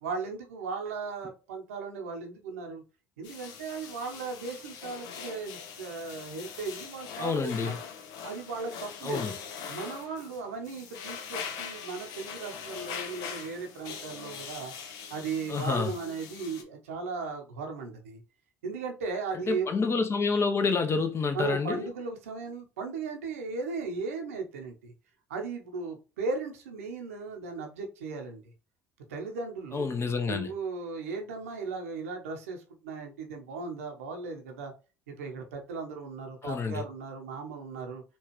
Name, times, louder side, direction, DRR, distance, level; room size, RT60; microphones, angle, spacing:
voice 1, 0.0-2.8 3.2-7.7 8.2-9.3 9.7-14.7 15.1-18.2 18.6-19.7 21.3-24.9 25.3-28.4 29.1-29.9 30.3-34.7 35.1-38.0, right 4 dB, 90° right, 0.7 m, -37 dB
sound 1, 3.2-16.6, left 6 dB, 70° left, 0.6 m, -42 dB
voice 2, 7.2-7.8 9.0-9.3 15.5-15.9 19.3-21.9 29.7-30.5 36.4-36.8, left 4 dB, 35° left, 0.8 m, -28 dB
4.4 x 2.4 x 3.0 m
hypercardioid pair, 60°, 7 cm